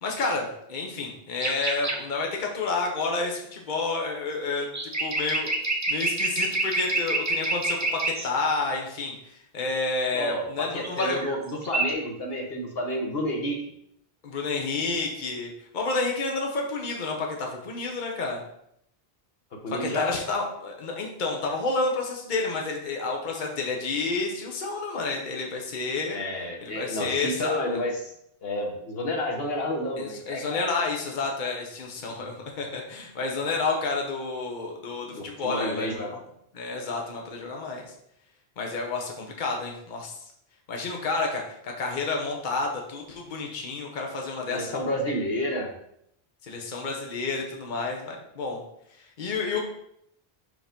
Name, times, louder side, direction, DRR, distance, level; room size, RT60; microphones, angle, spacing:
voice 1, 0.0-4.7 5.0-5.5 5.9-11.2 14.2-18.4 19.8-26.2 26.6-27.8 30.0-36.2 36.5-37.9 38.6-40.2 40.7-44.7 46.4-48.6 49.2-49.7, left 3 dB, 50° left, 1 dB, 1.0 m, -30 dB
sound 1, 1.4-2.0 4.6-8.3 10.8-11.4 11.6-11.9, right 2 dB, 20° right, 0.6 m, -27 dB
voice 2, 10.1-13.6 19.5-20.2 26.1-28.1 28.4-30.7 35.1-36.1 44.5-45.7, left 1 dB, 75° left, 1 dB, 1.3 m, -30 dB
5.1 x 3.8 x 5.1 m, 0.74 s
omnidirectional pair, 1.0 m